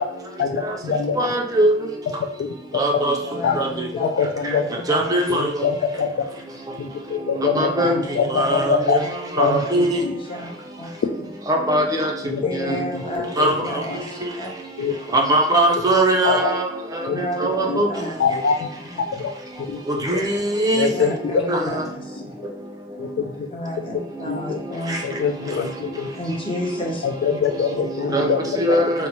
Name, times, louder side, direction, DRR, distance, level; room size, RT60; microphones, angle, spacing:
voice 1, 0.4-1.2 2.4-2.5 3.4-3.6 4.0-4.7 5.3-6.1 6.8-9.0 9.4-10.1 12.2-12.4 12.7-13.0 13.4-13.6 14.8-14.9 16.2-16.4 17.1-17.2 17.7-17.8 18.2-18.7 19.7-19.8 20.1-20.2 20.7-21.3 23.0-23.3 24.3-24.6 25.0-26.1 27.0-28.4, left 6 dB, 80° left, 0.3 m, -23 dB
voice 2, 1.2-1.7 2.8-3.1 4.9-5.4 7.6-7.9 8.4-8.7 9.4-10.0 11.5-12.1 13.4-13.5 15.3-16.5 17.4-17.9 20.3-20.9 21.5-21.6 28.1-28.3 28.6-28.9, right 1 dB, 20° right, 0.4 m, -19 dB
voice 3, 3.2-4.3 4.7-5.2 7.6-8.7 9.0-9.3 9.6-10.9 12.4-14.5 17.0-18.2 18.8-19.0 20.9-22.4 23.5-25.2 26.1-27.3 27.7-27.8, left 1 dB, 30° left, 0.7 m, -32 dB
4.0 x 2.0 x 2.9 m
head